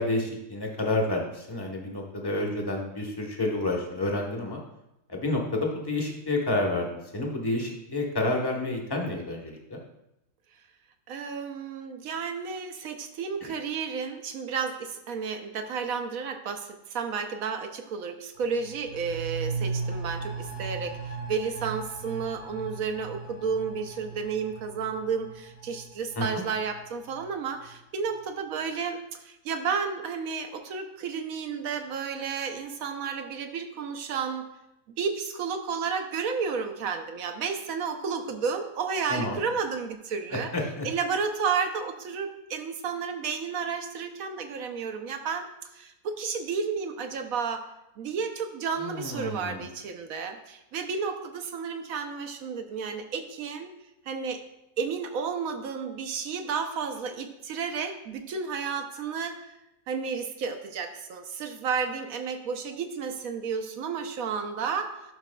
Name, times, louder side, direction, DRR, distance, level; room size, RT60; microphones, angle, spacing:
voice 1, 0.0-4.6 5.1-6.9 7.1-9.8 13.4-13.5 26.2-26.4 39.1-39.4 40.5-40.9 48.8-49.6, left 2 dB, 20° left, 0 dB, 0.9 m, -29 dB
voice 2, 11.1-34.5 35.0-40.5 40.8-45.5 45.7-47.6 48.0-53.7 54.1-54.4 54.8-59.6 59.9-64.9, right 5 dB, 65° right, 6 dB, 1.0 m, -32 dB
sound 1, 18.4-27.8 28.1-28.2, right 4 dB, 40° left, 1.2 m, -37 dB
11.5 x 6.0 x 2.2 m, 0.87 s
omnidirectional pair, 1.7 m